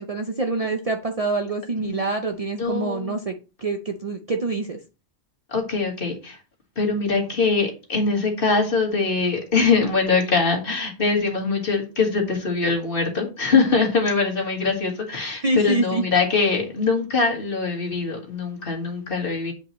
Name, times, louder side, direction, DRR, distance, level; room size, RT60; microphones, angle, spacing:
voice 1, 0.0-4.8 15.4-16.1, right 3 dB, 45° right, 5 dB, 0.5 m, -26 dB
voice 2, 2.6-3.2 5.5-6.4 6.8-19.5, left 4 dB, 55° left, 2 dB, 1.8 m, -23 dB
8.3 x 5.1 x 3.0 m, 0.32 s
omnidirectional pair, 1.1 m